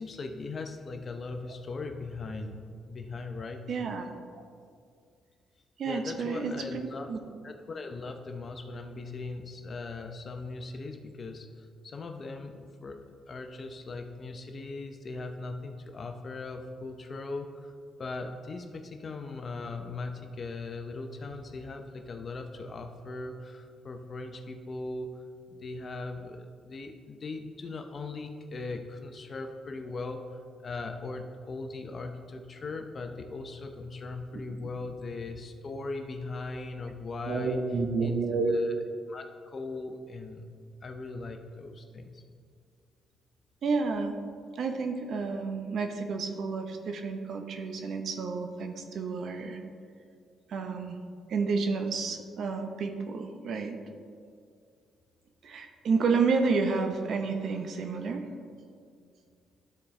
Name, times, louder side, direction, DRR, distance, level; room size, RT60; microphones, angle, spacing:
voice 1, 0.0-3.6 5.8-7.1 7.4-17.7 18.0-25.2 25.5-37.6 38.0-38.2 38.5-40.4 40.8-42.2, left 3 dB, 40° left, 5 dB, 0.7 m, -39 dB
voice 2, 3.7-4.1 5.8-7.2 37.2-38.5 43.6-44.1 44.5-49.6 50.5-51.0 51.3-53.7 55.4-58.3, right 4 dB, 65° right, 5 dB, 0.7 m, -30 dB
12.0 x 4.2 x 3.2 m, 2.2 s
cardioid pair, 90°, 0 cm